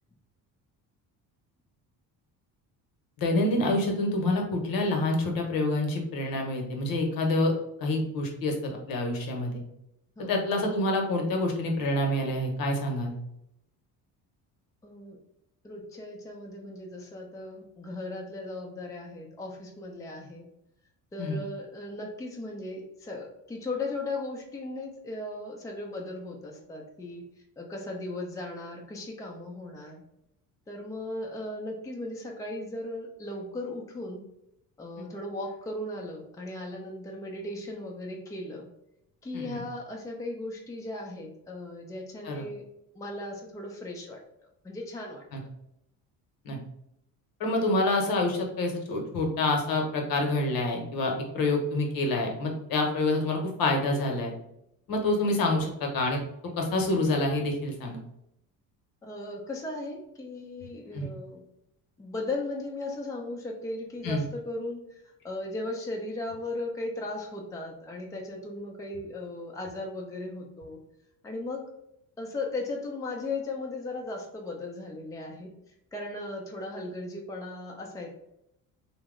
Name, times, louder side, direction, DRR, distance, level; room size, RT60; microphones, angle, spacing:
voice 1, 3.2-7.5 7.8-9.6 10.2-13.1 21.2-21.4 39.3-39.6 42.2-42.4 45.3-45.4 46.4-46.6 47.4-54.3 54.9-56.2 56.6-58.0 60.9-61.1 64.0-64.2, left 2 dB, 65° left, 2 dB, 0.9 m, -27 dB
voice 2, 14.8-15.2 15.6-20.4 21.1-27.3 27.6-30.0 30.7-34.2 34.8-38.7 39.2-42.6 42.9-44.2 44.6-45.2 59.0-61.4 62.0-70.8 71.2-71.7 72.2-75.5 75.9-78.1, left 2 dB, 10° left, 0 dB, 0.5 m, -37 dB
2.8 x 2.0 x 3.6 m, 0.79 s
cardioid pair, 105°, 38 cm